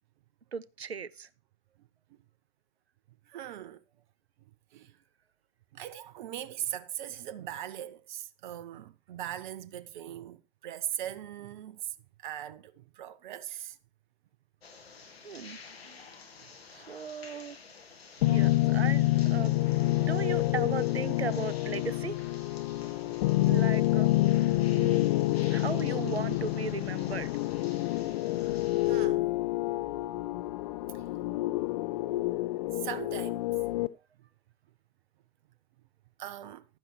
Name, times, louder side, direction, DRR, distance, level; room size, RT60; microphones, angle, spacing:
voice 1, 0.5-1.3 15.2-15.6 15.9-16.0 16.7-17.6 18.3-19.6 20.0-22.2 23.4-24.1 24.7-25.1 25.5-27.3, right 6 dB, 85° right, 0.6 m, -37 dB
voice 2, 3.3-3.8 4.7-4.9 5.7-13.8 16.7-16.9 23.1-23.2 28.9-29.3 30.9-31.3 32.7-33.5 34.2-34.3 36.2-36.7, right 11 dB, 50° right, 0.7 m, -40 dB
sound 1, 14.6-29.1, left 5 dB, 75° left, 1.8 m, -50 dB
sound 2, 18.2-33.9, left 17 dB, 40° left, 0.5 m, -28 dB
11.5 x 10.0 x 3.1 m
figure-of-eight pair, 100°, 31 cm